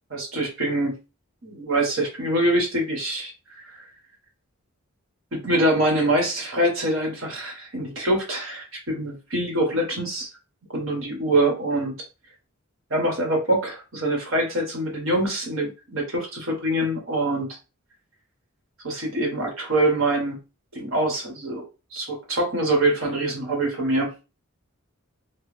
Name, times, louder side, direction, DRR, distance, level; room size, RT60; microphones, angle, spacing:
voice 1, 0.1-1.0 1.6-3.8 5.3-10.3 10.7-11.9 12.9-17.5 18.8-20.4 20.7-21.6 21.9-24.1, right 1 dB, 65° right, 0 dB, 1.4 m, -24 dB
3.1 x 2.3 x 3.2 m, 0.30 s
head